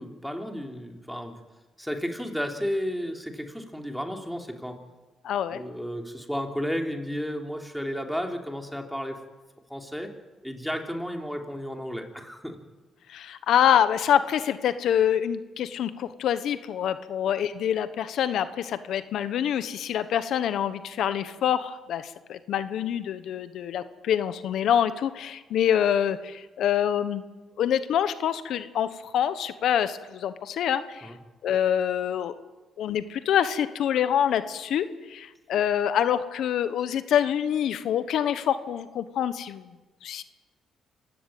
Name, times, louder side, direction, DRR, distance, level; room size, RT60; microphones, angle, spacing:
voice 1, 0.0-1.4 1.8-4.8 5.5-9.2 9.7-10.1 10.4-12.6 31.0-31.2, equal, ahead, 3 dB, 3.4 m, -33 dB
voice 2, 5.2-5.6 13.1-27.2 27.6-31.1 31.4-32.3 32.8-39.7 40.0-40.2, left 9 dB, 75° left, 12 dB, 1.1 m, -26 dB
26.0 x 16.0 x 9.3 m, 1.2 s
cardioid pair, 90°, 0 cm